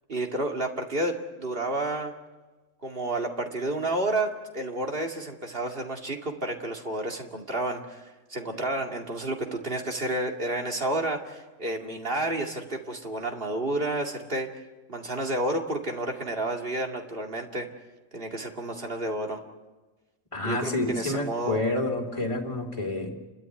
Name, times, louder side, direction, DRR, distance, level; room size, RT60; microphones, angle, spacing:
voice 1, 0.1-2.1 2.8-14.5 14.9-17.7 18.1-19.4 20.4-21.6, right 2 dB, 45° right, 2 dB, 2.5 m, -30 dB
voice 2, 20.3-23.2, left 2 dB, 25° left, 2 dB, 2.9 m, -29 dB
29.5 x 13.0 x 9.7 m, 1.2 s
omnidirectional pair, 1.3 m